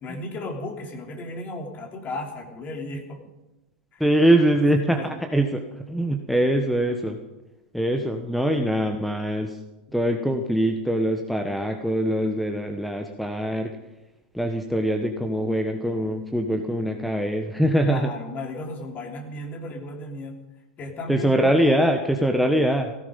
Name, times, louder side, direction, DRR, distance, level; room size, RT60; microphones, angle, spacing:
voice 1, 0.0-3.2 3.9-4.0 4.9-5.1 17.9-20.4 20.8-21.4 21.7-21.9, left 2 dB, 35° left, 2 dB, 3.4 m, -35 dB
voice 2, 4.0-7.2 7.7-9.6 9.9-13.7 14.3-18.1 21.1-22.9, right 1 dB, ahead, 4 dB, 1.2 m, -23 dB
17.0 x 14.5 x 5.3 m, 1.0 s
hypercardioid pair, 105°, 5 cm